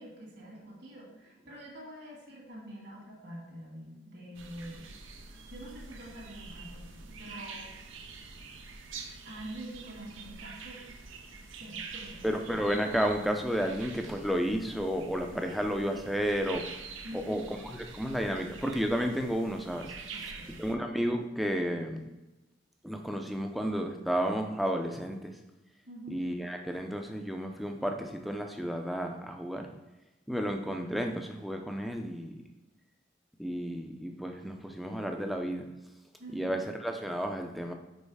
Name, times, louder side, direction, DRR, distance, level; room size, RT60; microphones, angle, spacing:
voice 1, 0.0-4.9 5.5-7.7 9.2-12.3 17.0-17.4 20.1-20.6 25.9-26.2 36.2-36.5, right 1 dB, 55° right, -3 dB, 1.9 m, -46 dB
sound 1, 4.4-20.7, right 4 dB, 85° right, 0.7 m, -46 dB
voice 2, 12.2-16.7 17.3-17.4 17.7-19.9 20.6-22.0 22.8-25.3 26.1-29.7 30.3-32.3 33.4-35.7 36.3-37.7, equal, ahead, 3 dB, 0.5 m, -32 dB
5.4 x 4.3 x 4.8 m, 1.0 s
head